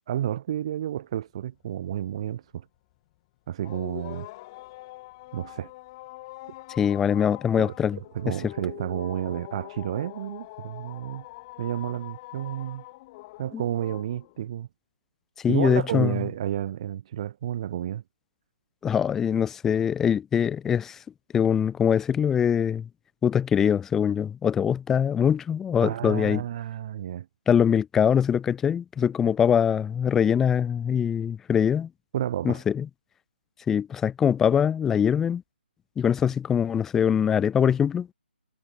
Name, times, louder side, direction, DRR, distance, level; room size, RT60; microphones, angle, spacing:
voice 1, 0.0-2.6 3.5-4.3 5.3-5.7 7.6-11.2 11.6-12.8 13.4-14.7 15.5-18.0 25.8-27.3 32.1-32.6, right 11 dB, 35° right, 0.6 m, -31 dB
sound 1, 3.6-14.5, left 20 dB, 25° left, 1.0 m, -44 dB
voice 2, 6.8-8.0 8.3-8.5 13.5-13.6 15.4-16.2 18.8-21.0 21.3-22.9 23.2-26.4 27.5-31.9 32.4-32.9 33.7-35.4 36.0-38.1, left 8 dB, 5° left, 0.3 m, -23 dB
figure-of-eight pair, 155°, 6 cm